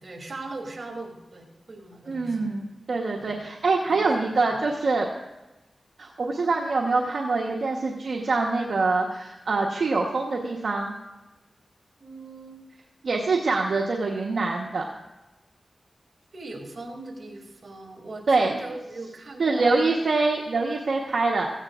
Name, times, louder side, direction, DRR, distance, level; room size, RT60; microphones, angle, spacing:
voice 1, 0.0-2.5 3.2-3.4 3.9-4.1 4.6-4.7 12.0-12.7 16.3-20.1, right 2 dB, 60° right, 1 dB, 2.6 m, -40 dB
voice 2, 2.1-5.1 6.0-10.9 13.0-14.8 18.3-18.5 19.4-21.5, right 3 dB, 80° right, -1 dB, 1.1 m, -24 dB
16.0 x 15.5 x 2.5 m, 1.0 s
cardioid pair, 60°, 0 cm